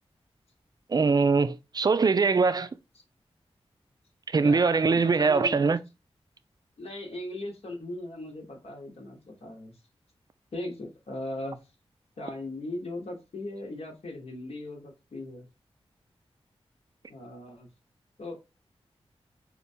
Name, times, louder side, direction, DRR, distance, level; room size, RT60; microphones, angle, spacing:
voice 1, 0.9-2.7 4.3-5.8, right 4 dB, 40° right, 0.4 m, -22 dB
voice 2, 4.4-5.8 6.8-9.8 10.5-11.6 12.2-15.5 17.1-17.7 18.2-18.4, left 1 dB, 70° left, 0.9 m, -38 dB
4.3 x 2.2 x 2.6 m
cardioid pair, 60°, 11 cm